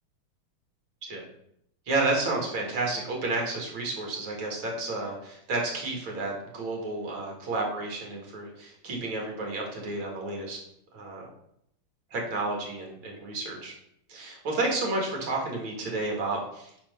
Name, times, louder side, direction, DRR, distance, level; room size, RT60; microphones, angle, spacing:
voice 1, 1.9-10.6 10.9-11.3 12.1-13.7 14.1-16.7, right 2 dB, 65° right, -1 dB, 2.5 m, -31 dB
5.6 x 4.4 x 5.4 m, 0.74 s
omnidirectional pair, 2.4 m